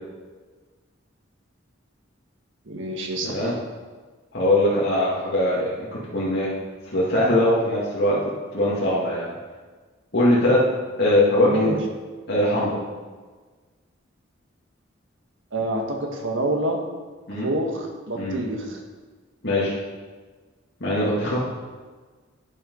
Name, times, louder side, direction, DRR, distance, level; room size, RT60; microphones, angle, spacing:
voice 1, 2.7-3.3 11.4-11.8 15.5-16.8 17.3-18.8, right 1 dB, 70° right, 2 dB, 1.6 m, -26 dB
voice 2, 3.2-3.5 4.3-6.5 6.9-8.2 8.5-9.3 10.1-10.6 11.0-11.7 12.3-12.8 17.3-17.5 18.2-18.4 19.4-19.7 20.8-21.4, left 1 dB, 55° left, -8 dB, 2.2 m, -21 dB
10.5 x 7.0 x 5.4 m, 1.4 s
head